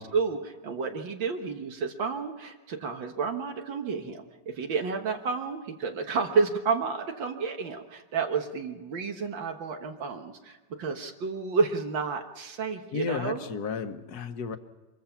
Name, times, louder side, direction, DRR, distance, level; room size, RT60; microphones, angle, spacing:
voice 1, 0.0-13.5, right 5 dB, 75° right, 5 dB, 2.1 m, -30 dB
voice 2, 12.9-14.6, left 6 dB, 60° left, 9 dB, 1.5 m, -33 dB
25.0 x 22.5 x 5.8 m, 1.2 s
omnidirectional pair, 2.1 m